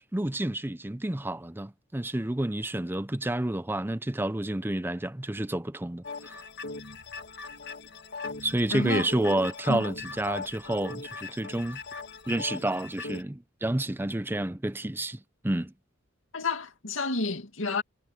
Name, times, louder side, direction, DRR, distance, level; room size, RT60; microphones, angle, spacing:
voice 1, 0.1-6.4 8.4-11.8 12.3-15.7, right 1 dB, 10° right, 0.6 m, -30 dB
sound 1, 6.0-13.2, left 4 dB, 60° left, 1.6 m, -40 dB
voice 2, 8.7-9.1 9.7-9.9 16.3-17.8, left 3 dB, 85° left, 2.4 m, -30 dB
head